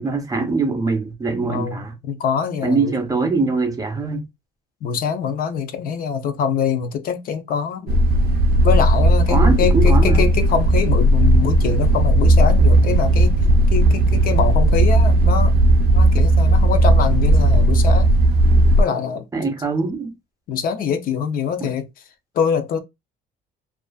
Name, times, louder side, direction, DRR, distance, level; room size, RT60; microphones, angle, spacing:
voice 1, 0.0-1.9 2.6-4.2 9.3-10.3 19.3-20.1 21.6-21.7, right 3 dB, 20° right, 0.6 m, -22 dB
voice 2, 1.5-2.9 4.8-8.0 8.6-13.4 13.7-15.5 15.9-18.1 18.8-19.3 20.5-21.9 22.3-22.8, left 6 dB, 60° left, 0.5 m, -24 dB
sound 1, 7.9-18.8, right 1 dB, 70° right, 0.4 m, -15 dB
2.4 x 2.3 x 2.3 m
cardioid pair, 110°, 17 cm